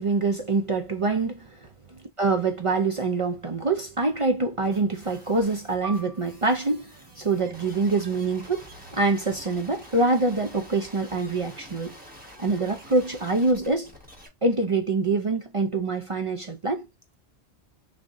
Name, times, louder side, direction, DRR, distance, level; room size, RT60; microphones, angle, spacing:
voice 1, 0.0-1.7 2.2-8.7 8.9-11.9 12.4-13.9 14.4-16.9, right 3 dB, 40° right, 0.5 m, -25 dB
sound 1, 4.6-14.3, equal, 10° right, 1.3 m, -47 dB
Piano, 5.8-10.9 11.2-11.4 12.1-12.5, right 4 dB, 55° right, 1.1 m, -46 dB
3.6 x 2.6 x 3.7 m
omnidirectional pair, 1.2 m